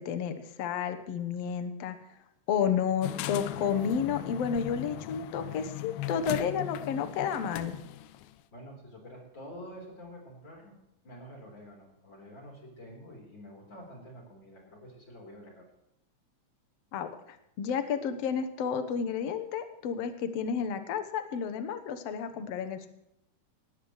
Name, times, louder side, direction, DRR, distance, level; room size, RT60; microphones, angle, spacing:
voice 1, 0.0-2.0 2.5-7.8 16.9-22.9, left 7 dB, 60° left, 9 dB, 1.9 m, -31 dB
sound 1, 3.0-8.3, left 13 dB, 80° left, 1.7 m, -38 dB
voice 2, 8.5-10.8 11.0-15.7, equal, 35° left, -1 dB, 4.6 m, -48 dB
19.0 x 16.0 x 3.2 m, 0.84 s
omnidirectional pair, 3.8 m